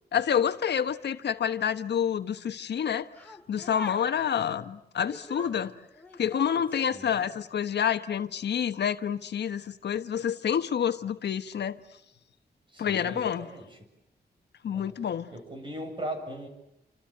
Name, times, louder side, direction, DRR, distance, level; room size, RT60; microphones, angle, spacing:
voice 1, 0.1-3.1 3.5-5.7 6.2-11.8 12.8-13.5 14.6-15.3, left 8 dB, 80° left, 1.3 m, -28 dB
sound 1, 3.1-4.2 5.1-7.0 7.5-7.7, left 1 dB, 10° left, 2.6 m, -44 dB
voice 2, 6.9-7.3 12.7-13.7 14.7-14.9 15.3-16.5, right 1 dB, 30° right, 7.5 m, -39 dB
28.5 x 26.5 x 7.5 m
wide cardioid pair, 155°, 17 cm